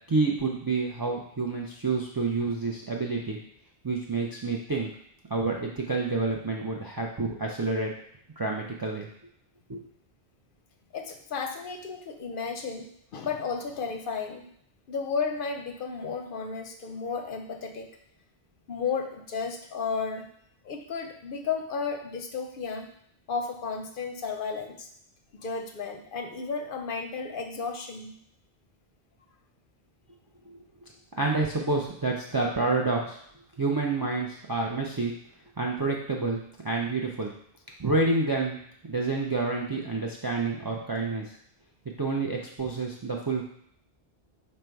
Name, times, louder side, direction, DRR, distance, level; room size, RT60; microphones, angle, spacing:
voice 1, 0.1-3.4 3.8-4.9 5.3-7.9 8.4-9.1 9.7-9.8 30.5-30.6 31.2-33.2 33.6-35.1 35.6-37.3 37.8-38.6 38.9-41.3 42.0-43.5, right 3 dB, 40° right, -1 dB, 0.3 m, -28 dB
voice 2, 10.9-14.4 14.9-17.9 18.7-20.3 20.6-22.9 23.3-24.9 25.3-28.2, left 5 dB, 65° left, 4 dB, 0.7 m, -33 dB
5.1 x 2.2 x 4.5 m, 0.69 s
omnidirectional pair, 1.0 m